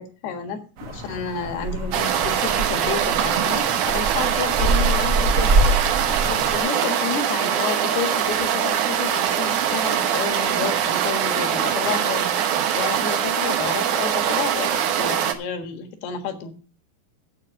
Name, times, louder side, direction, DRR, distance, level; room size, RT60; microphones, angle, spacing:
voice 1, 0.0-5.5 6.3-12.4 12.7-16.5, left 7 dB, 70° left, 7 dB, 3.3 m, -30 dB
sound 1, 0.8-6.6, right 2 dB, 85° right, 1.2 m, -25 dB
sound 2, 1.9-15.3, right 9 dB, 65° right, 2.0 m, -23 dB
9.9 x 8.0 x 6.2 m, 0.37 s
omnidirectional pair, 5.0 m